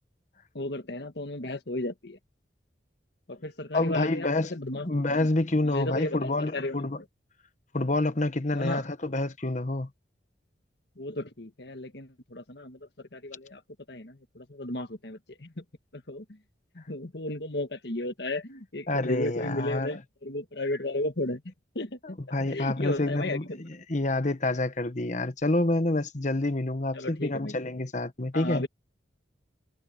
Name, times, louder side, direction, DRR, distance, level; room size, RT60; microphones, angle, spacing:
voice 1, 0.5-2.2 3.3-5.3 5.6-6.9 8.5-8.8 11.0-13.6 13.9-15.6 15.9-16.2 16.7-22.2 22.5-23.6 26.9-27.5 28.3-28.7, left 1 dB, 60° left, 1.6 m, -34 dB
voice 2, 3.7-4.5 4.8-7.0 7.7-9.9 18.9-20.0 22.0-28.6, left 2 dB, 40° left, 1.2 m, -28 dB
head